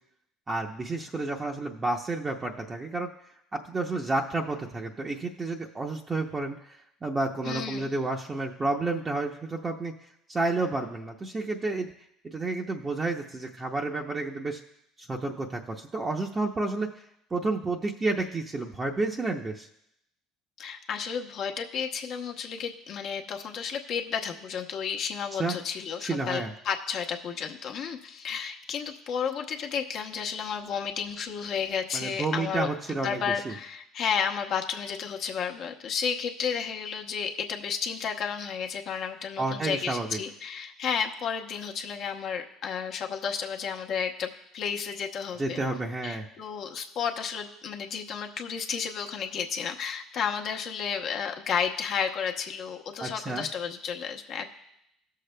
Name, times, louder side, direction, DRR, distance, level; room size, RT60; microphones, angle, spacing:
voice 1, 0.5-3.1 3.5-9.9 10.3-11.9 12.2-14.6 15.0-17.0 17.3-19.7 25.3-25.6 26.0-26.5 31.9-33.5 39.4-40.2 45.4-46.3 53.0-53.5, right 2 dB, 25° right, -1 dB, 0.7 m, -30 dB
voice 2, 7.4-7.9 20.6-45.6 46.0-54.5, left 7 dB, 60° left, 2 dB, 0.9 m, -32 dB
17.0 x 6.6 x 2.2 m, 0.79 s
supercardioid pair, 90°, 0 cm